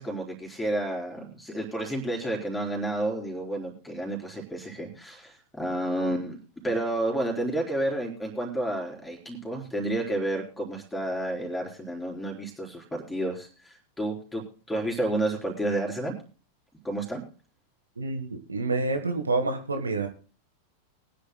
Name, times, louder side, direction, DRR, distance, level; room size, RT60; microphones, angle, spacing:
voice 1, 0.0-6.4 6.6-16.1 16.8-17.2, right 1 dB, 10° left, 0 dB, 3.9 m, -30 dB
voice 2, 18.0-20.1, right 3 dB, 75° right, 6 dB, 1.3 m, -28 dB
22.5 x 10.0 x 2.2 m, 0.37 s
figure-of-eight pair, 90°, 0 cm